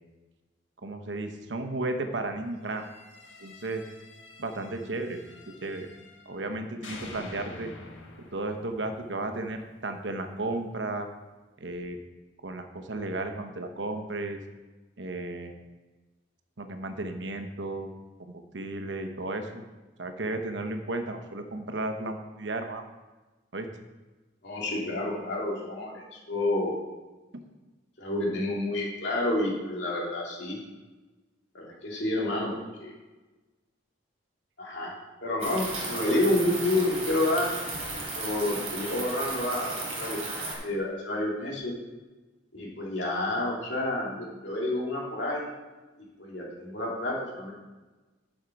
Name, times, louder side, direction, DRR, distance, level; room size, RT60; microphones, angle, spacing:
voice 1, 0.8-2.9 3.4-3.8 4.4-5.2 5.6-5.9 6.3-7.7 8.3-11.1 11.6-12.0 12.4-14.4 15.0-15.5 16.6-17.9 18.3-19.6 20.0-22.8 23.5-23.7, right 2 dB, 70° right, 6 dB, 1.0 m, -34 dB
sound 1, 2.7-6.5 6.8-9.8, left 2 dB, 90° left, 1.5 m, -48 dB
voice 2, 24.4-26.7 28.0-30.6 31.5-32.9 34.6-37.5 38.2-40.2 40.6-41.7 42.5-45.5 46.2-47.5, left 1 dB, 65° left, -3 dB, 2.9 m, -29 dB
sound 2, 35.4-40.5, right 2 dB, 35° right, 3.3 m, -35 dB
11.0 x 6.4 x 4.7 m, 1.2 s
head